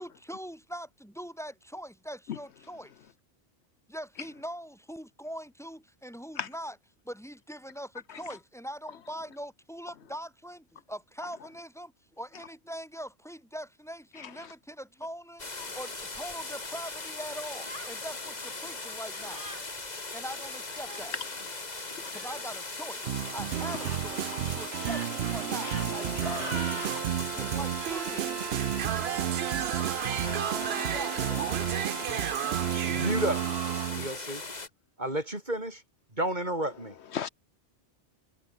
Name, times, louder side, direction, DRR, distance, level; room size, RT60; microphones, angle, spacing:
voice 1, 0.0-2.9 3.9-6.8 7.0-19.5 20.1-21.2 22.1-23.0 23.3-26.9 27.3-28.4 30.6-31.6, equal, ahead, 5.5 m, -42 dB
sound 1, 15.4-34.7, left 3 dB, 35° left, 2.2 m, -39 dB
sound 2, 17.6-18.0 19.2-19.6 20.8-21.1 22.1-22.4 23.6-24.0 24.7-25.1 25.5-25.9 26.1-27.0 29.8-31.7, right 1 dB, 90° right, 8.4 m, -43 dB
sound 3, 23.0-34.1, right 11 dB, 70° right, 0.8 m, -31 dB
voice 2, 30.1-30.9 31.5-31.8 32.1-32.2 32.9-33.0 37.1-37.3, left 8 dB, 75° left, 1.0 m, -38 dB
voice 3, 32.8-33.4 33.9-34.4 35.0-35.8 36.1-37.0, right 1 dB, 40° right, 6.7 m, -31 dB
omnidirectional pair, 1.2 m